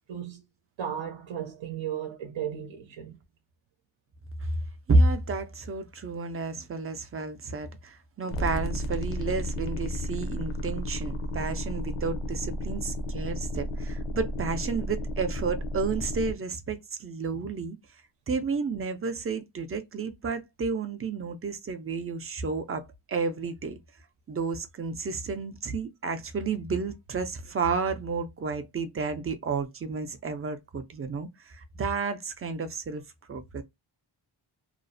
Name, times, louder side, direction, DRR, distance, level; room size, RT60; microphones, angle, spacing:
voice 1, 0.1-0.4 0.8-3.2, right 9 dB, 70° right, 0.7 m, -35 dB
voice 2, 4.9-17.8 18.3-23.8 24.3-33.0 33.3-33.6, right 4 dB, 30° right, 0.4 m, -31 dB
sound 1, 8.3-16.3, equal, 85° left, 0.6 m, -33 dB
2.5 x 2.0 x 2.5 m
wide cardioid pair, 80°, 49 cm